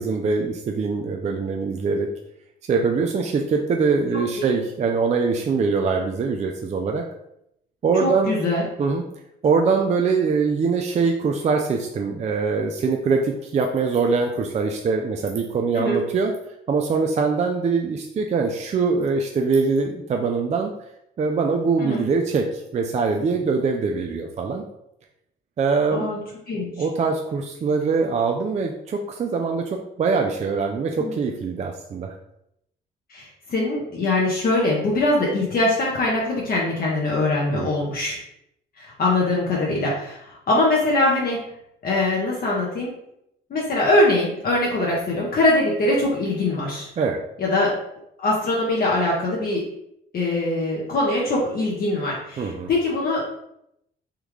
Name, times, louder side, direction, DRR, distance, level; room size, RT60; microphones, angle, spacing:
voice 1, 0.0-2.1 2.7-7.1 7.8-8.3 8.8-9.0 9.4-16.3 16.7-20.7 21.2-24.6 25.6-26.0 26.8-32.1 37.5-37.7 47.0-47.2 52.4-52.7, right 4 dB, 35° right, 2 dB, 0.4 m, -23 dB
voice 2, 8.0-8.6 15.7-16.0 21.8-22.0 25.9-26.2 26.5-26.7 31.0-31.1 33.1-38.2 38.8-41.4 41.8-42.9 43.5-46.9 47.4-47.7 48.2-49.6 50.1-53.2, left 2 dB, 50° left, -4 dB, 0.8 m, -22 dB
3.5 x 2.3 x 3.1 m, 0.79 s
cardioid pair, 90°, 20 cm